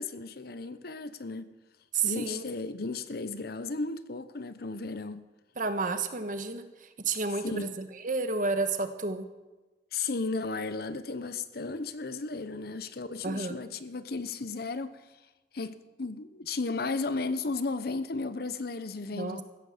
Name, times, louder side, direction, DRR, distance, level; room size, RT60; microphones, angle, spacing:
voice 1, 0.0-1.5 2.0-5.2 7.4-7.8 9.9-15.0 15.5-19.4, left 3 dB, 60° left, 0.8 m, -34 dB
voice 2, 1.9-2.5 5.6-9.2 13.2-13.6 19.1-19.4, right 4 dB, 50° right, 1.3 m, -31 dB
15.5 x 9.6 x 7.2 m
head